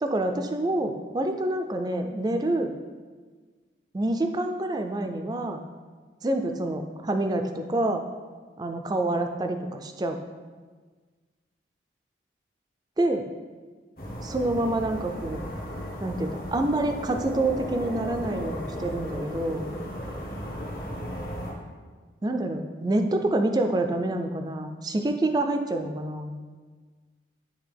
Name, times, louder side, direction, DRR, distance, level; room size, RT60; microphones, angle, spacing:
voice 1, 0.0-2.7 3.9-5.6 6.2-8.0 8.6-10.2 13.0-13.3 14.2-15.5 16.0-19.7 22.2-26.4, right 1 dB, 20° right, 6 dB, 0.3 m, -27 dB
sound 1, 14.0-21.5, equal, 50° left, 1.0 m, -35 dB
9.5 x 3.2 x 3.4 m, 1.4 s
head